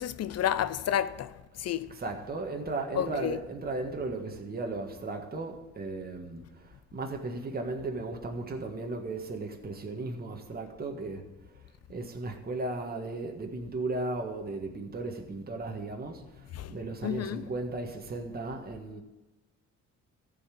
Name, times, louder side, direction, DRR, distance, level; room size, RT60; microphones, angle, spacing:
voice 1, 0.0-1.9 2.9-3.4 16.5-16.8 17.0-17.5, left 10 dB, 55° left, 0.6 m, -31 dB
voice 2, 1.9-11.2 11.9-16.2 16.7-19.0, right 3 dB, 30° right, 1.6 m, -36 dB
14.5 x 5.6 x 8.5 m
cardioid pair, 90°, 30 cm